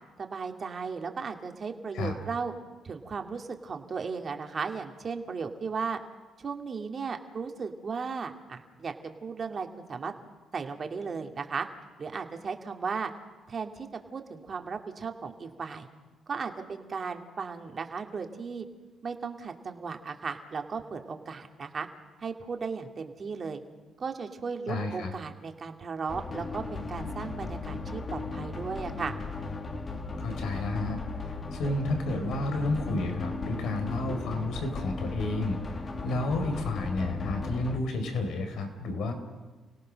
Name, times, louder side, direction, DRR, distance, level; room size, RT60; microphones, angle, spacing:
voice 1, 0.2-2.5 2.8-6.0 6.4-10.1 10.5-11.7 12.0-13.1 13.5-15.9 16.3-18.6 19.0-21.9 22.2-23.6 24.0-29.1, right 5 dB, 45° right, 4 dB, 2.5 m, -36 dB
voice 2, 24.7-25.1 30.2-39.1, left 2 dB, 75° left, 6 dB, 4.4 m, -31 dB
sound 1, 26.1-37.8, left 3 dB, 35° left, 2.0 m, -36 dB
29.5 x 18.0 x 6.5 m, 1.3 s
cardioid pair, 90°, 0 cm